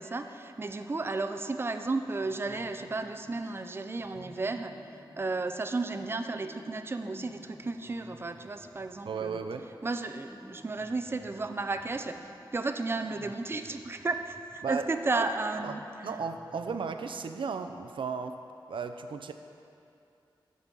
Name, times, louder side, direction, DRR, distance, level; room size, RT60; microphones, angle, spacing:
voice 1, 0.0-4.7 5.2-9.4 9.8-12.2 12.5-15.8, right 3 dB, 30° right, 8 dB, 0.4 m, -33 dB
sound 1, 2.2-3.6 3.9-17.8, equal, 5° left, 1.1 m, -55 dB
voice 2, 9.0-9.7 14.6-15.3 15.6-15.7 16.0-18.4 18.7-19.3, right 5 dB, 85° right, 7 dB, 0.4 m, -35 dB
7.9 x 5.4 x 7.5 m, 2.7 s
wide cardioid pair, 100°, 8 cm